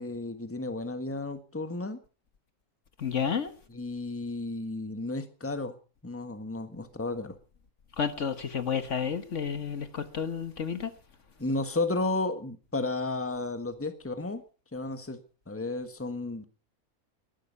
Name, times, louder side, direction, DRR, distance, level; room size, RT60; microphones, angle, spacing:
voice 1, 0.0-2.0 3.7-5.8 6.0-7.4 11.4-14.4 14.7-15.2 15.5-16.4, left 2 dB, 10° left, 1.4 m, -33 dB
voice 2, 3.0-3.5 8.0-10.9, left 7 dB, 60° left, 1.6 m, -31 dB
21.5 x 12.0 x 5.4 m
omnidirectional pair, 1.5 m